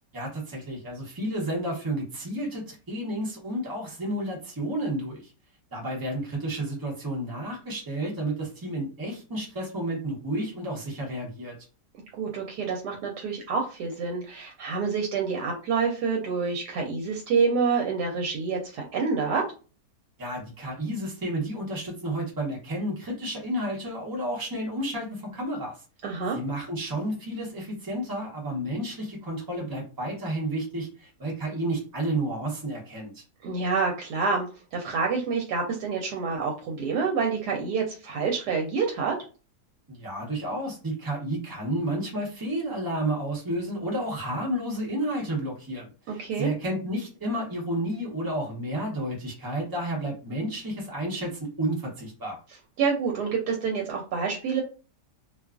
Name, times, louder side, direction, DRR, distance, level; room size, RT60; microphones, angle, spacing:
voice 1, 0.1-5.3 5.7-11.5 20.2-25.7 26.3-33.2 39.9-52.4, right 1 dB, 30° right, -2 dB, 0.4 m, -31 dB
voice 2, 12.2-19.4 26.0-26.4 33.4-34.5 34.7-39.2 46.1-46.5 52.8-54.6, right 5 dB, 75° right, 0 dB, 1.1 m, -27 dB
2.7 x 2.3 x 2.3 m, 0.35 s
omnidirectional pair, 1.8 m